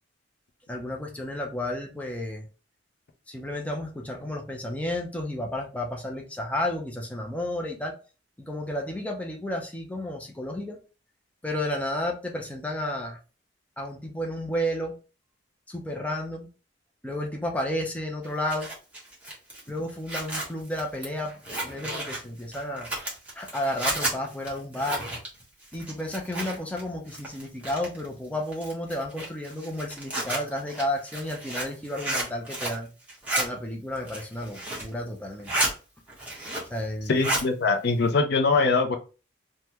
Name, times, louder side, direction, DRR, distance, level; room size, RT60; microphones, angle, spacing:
voice 1, 0.7-2.5 3.3-8.0 8.4-10.8 11.4-13.2 13.8-15.0 15.7-16.5 17.0-18.7 19.7-22.9 23.3-25.0 25.7-32.9 33.4-35.7 36.7-37.2, left 1 dB, 10° left, 1 dB, 0.5 m, -32 dB
Zipper (clothing), 18.2-26.8 27.1-28.1 28.5-32.8 33.1-33.4 33.9-34.9 35.3-35.7 36.1-36.8 37.0-37.5, right 1 dB, 10° right, 1.0 m, -32 dB
voice 2, 37.1-39.0, left 4 dB, 60° left, 5 dB, 0.5 m, -22 dB
3.4 x 2.1 x 2.9 m, 0.34 s
head